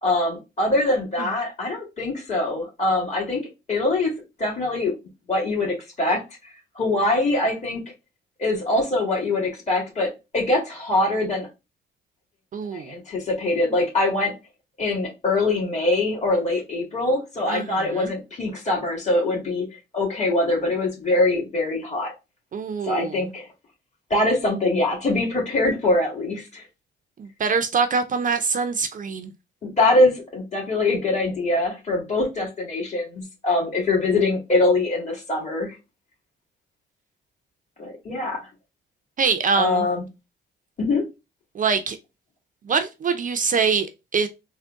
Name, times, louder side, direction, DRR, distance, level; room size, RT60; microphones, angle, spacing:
voice 1, 0.0-3.4 3.7-4.1 4.4-4.9 5.3-6.2 6.8-7.8 8.4-11.5 12.7-14.3 14.8-19.7 19.9-22.1 22.8-23.5 24.1-26.6 29.6-35.8 37.8-38.5 39.6-40.0 40.8-41.1, left 2 dB, 35° left, 2.0 m, -23 dB
voice 2, 12.5-12.9 17.5-18.1 22.5-23.3 27.2-29.3 39.2-39.9 41.5-42.0 42.6-44.3, right 5 dB, 40° right, 0.5 m, -24 dB
3.7 x 2.1 x 3.6 m
cardioid pair, 90°, 20 cm